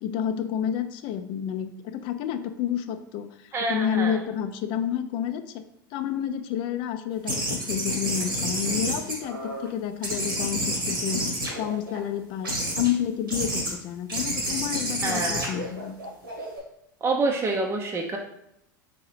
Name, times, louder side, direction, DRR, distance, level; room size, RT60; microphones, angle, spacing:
voice 1, 0.0-5.6 5.9-11.2 11.6-15.9, left 9 dB, 50° left, 9 dB, 0.4 m, -30 dB
voice 2, 3.5-4.2 15.0-15.4 17.0-18.2, right 3 dB, 20° right, 1 dB, 0.5 m, -27 dB
sound 1, 7.2-9.7 10.0-12.0 12.4-12.9 13.3-13.7 14.1-16.6, equal, 90° right, 1.4 m, -29 dB
3.9 x 3.6 x 3.2 m, 0.83 s
hypercardioid pair, 85°, 11 cm